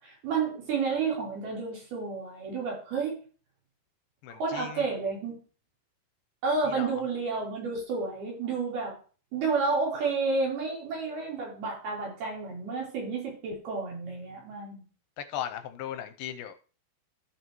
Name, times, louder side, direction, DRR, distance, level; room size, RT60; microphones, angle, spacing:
voice 1, 0.0-3.2 4.3-5.4 6.4-9.0 9.3-14.9, right 4 dB, 90° right, 5.8 m, -31 dB
voice 2, 4.2-4.9 6.7-7.0 14.3-14.4 15.2-16.5, left 10 dB, 80° left, 2.3 m, -37 dB
14.5 x 6.2 x 3.0 m
omnidirectional pair, 4.3 m